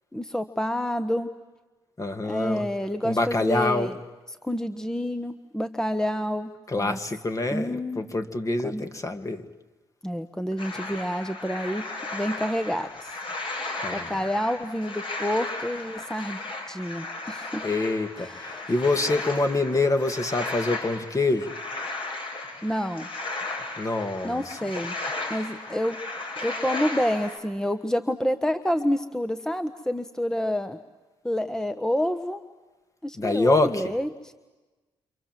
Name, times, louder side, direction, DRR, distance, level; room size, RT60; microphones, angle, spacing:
voice 1, 0.1-1.3 2.2-3.9 4.4-6.5 6.8-7.0 7.5-8.0 8.6-8.8 10.0-11.8 12.1-13.1 13.4-16.4 16.7-17.6 18.2-18.7 22.6-23.1 24.2-24.9 25.3-26.0 26.4-30.8 31.2-32.4 33.0-34.3, equal, 5° left, 10 dB, 1.3 m, -28 dB
voice 2, 2.0-2.7 3.0-3.9 6.7-9.5 13.8-14.2 17.6-21.5 23.8-24.6 33.1-33.9, left 2 dB, 30° left, 7 dB, 2.4 m, -26 dB
sound 1, 10.6-27.4, left 2 dB, 55° left, 6.3 m, -35 dB
29.0 x 26.5 x 7.7 m, 1.2 s
supercardioid pair, 60°, 10 cm